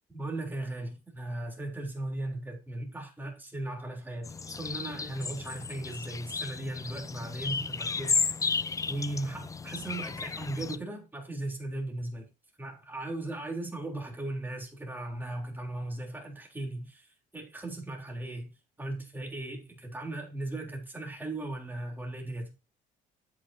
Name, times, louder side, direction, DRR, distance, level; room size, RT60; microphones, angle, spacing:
voice 1, 0.1-8.1 8.4-12.3 12.6-17.1 17.3-18.5 18.8-22.5, right 2 dB, 10° right, 3.7 m, -37 dB
sound 1, 4.2-10.8, left 5 dB, 20° left, 0.4 m, -33 dB
8.8 x 8.7 x 2.9 m
cardioid pair, 110°, 17 cm